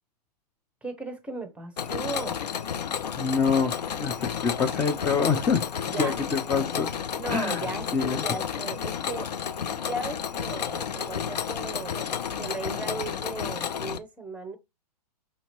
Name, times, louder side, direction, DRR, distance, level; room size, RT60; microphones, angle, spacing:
voice 1, 0.8-2.4 5.9-6.2 6.6-6.7 7.1-9.3 9.7-14.6, right 3 dB, 5° right, 0.8 m, -37 dB
Mechanisms, 1.8-14.0, left 7 dB, 75° left, 0.5 m, -31 dB
voice 2, 3.2-5.6 6.0-6.9 7.3-7.6 7.9-8.2, left 5 dB, 10° left, 0.4 m, -26 dB
5.1 x 2.8 x 2.9 m
hypercardioid pair, 120°, 21 cm